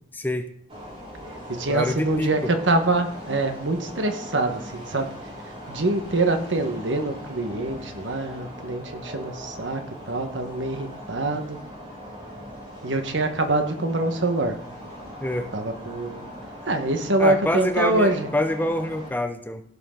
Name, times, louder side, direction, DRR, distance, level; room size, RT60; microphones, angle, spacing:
voice 1, 0.1-0.5 1.7-2.5 15.2-15.5 17.2-19.6, left 1 dB, 10° left, 8 dB, 0.6 m, -26 dB
sound 1, 0.7-19.1, equal, 30° right, 4.1 m, -40 dB
voice 2, 1.5-5.1 5.7-11.6 12.8-14.6 15.5-16.2 16.6-18.3, right 2 dB, 75° right, 6 dB, 1.4 m, -25 dB
16.5 x 6.7 x 3.9 m, 0.66 s
head